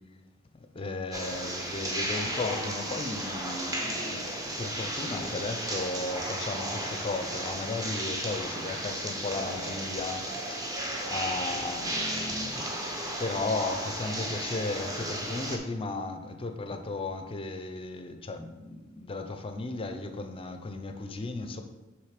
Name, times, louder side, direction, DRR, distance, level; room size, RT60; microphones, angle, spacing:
voice 1, 0.5-21.6, left 3 dB, 25° left, 6 dB, 0.5 m, -35 dB
sound 1, 1.1-15.6, right 1 dB, 20° right, 0.8 m, -34 dB
6.5 x 3.2 x 5.0 m, 1.1 s
head